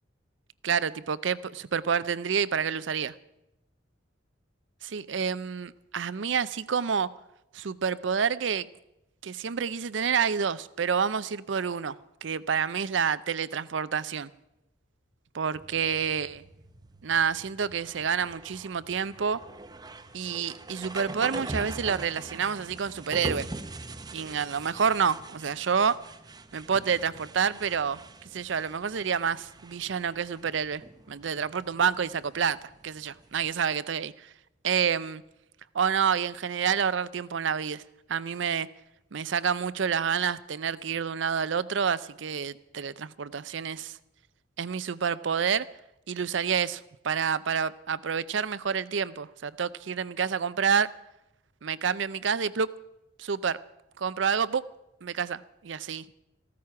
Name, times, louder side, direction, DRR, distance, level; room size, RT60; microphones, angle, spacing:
voice 1, 0.6-3.1 4.8-7.1 7.5-8.7 9.2-12.0 12.2-14.3 15.3-16.4 17.0-19.4 20.1-23.5 24.1-26.0 26.5-28.0 28.3-30.8 31.1-32.6 32.8-34.3 34.6-35.2 35.7-37.8 38.1-38.7 39.1-44.0 44.6-45.7 46.1-50.9 51.6-52.7 53.2-53.6 54.0-54.6 55.0-56.2, right 6 dB, 70° right, 0.5 m, -28 dB
sound 1, 15.5-33.5, right 2 dB, 20° right, 0.7 m, -43 dB
15.0 x 13.5 x 5.8 m
head